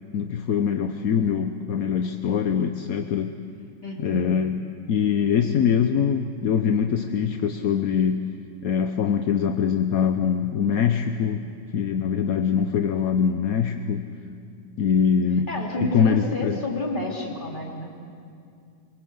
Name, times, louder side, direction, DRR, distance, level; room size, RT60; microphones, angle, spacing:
voice 1, 0.1-3.3 4.0-4.6 4.9-8.3 8.6-11.4 11.7-14.1 14.8-15.5 15.8-16.6, left 7 dB, 60° left, 6 dB, 1.0 m, -23 dB
voice 2, 3.8-4.3 15.5-17.9, left 1 dB, 25° left, -1 dB, 3.2 m, -30 dB
24.0 x 23.0 x 7.9 m, 2.4 s
omnidirectional pair, 2.2 m